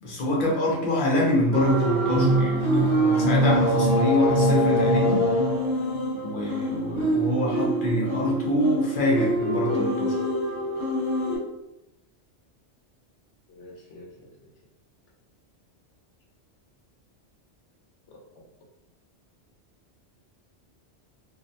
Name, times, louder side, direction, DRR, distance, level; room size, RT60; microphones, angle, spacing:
voice 1, 0.0-5.2 6.2-10.1, left 1 dB, 55° left, -2 dB, 0.7 m, -25 dB
sound 1, 1.5-11.4, right 1 dB, 30° right, 0.9 m, -24 dB
voice 2, 13.5-14.5 18.1-18.4, left 1 dB, 90° left, -1 dB, 1.0 m, -48 dB
2.5 x 2.1 x 2.6 m, 0.90 s
omnidirectional pair, 1.1 m